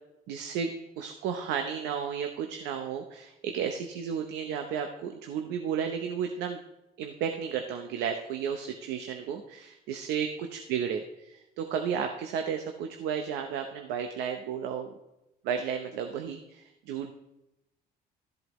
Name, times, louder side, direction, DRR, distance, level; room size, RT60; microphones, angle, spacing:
voice 1, 0.3-6.6 7.0-14.9 15.4-17.1, right 7 dB, 90° right, 5 dB, 0.8 m, -33 dB
13.5 x 7.9 x 3.1 m, 0.92 s
cardioid pair, 110°, 17 cm